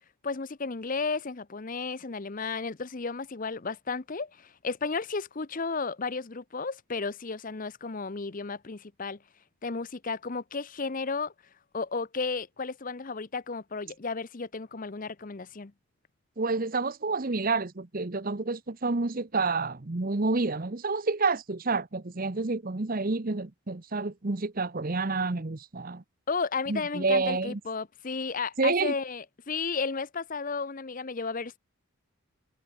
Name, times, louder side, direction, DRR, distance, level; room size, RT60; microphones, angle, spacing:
voice 1, 0.2-9.2 9.6-11.3 11.7-15.7 26.3-31.6, left 4 dB, 35° left, 0.7 m, -33 dB
voice 2, 16.4-26.0 26.7-27.6 28.6-28.9, right 3 dB, 40° right, 0.9 m, -29 dB
head